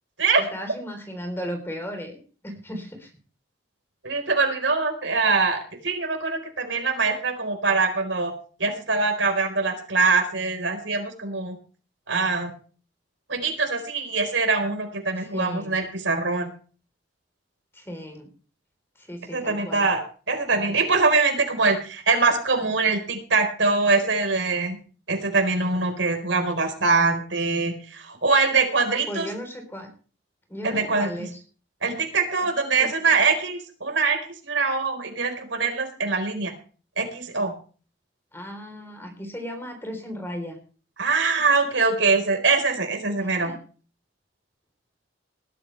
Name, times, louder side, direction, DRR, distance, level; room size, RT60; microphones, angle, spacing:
voice 1, 0.5-3.1 15.2-15.8 17.7-18.3 19.0-19.8 28.9-29.9 30.5-31.4 32.8-33.2 38.3-40.6 43.2-43.6, equal, 10° left, 4 dB, 3.9 m, -36 dB
voice 2, 4.0-8.3 8.6-11.5 12.1-12.5 13.3-16.5 19.3-20.0 20.3-24.8 25.1-29.3 30.6-31.3 31.8-34.2 34.5-36.5 37.0-37.5 41.0-43.5, right 4 dB, 85° right, 5 dB, 4.7 m, -23 dB
20.5 x 12.5 x 3.4 m, 0.39 s
head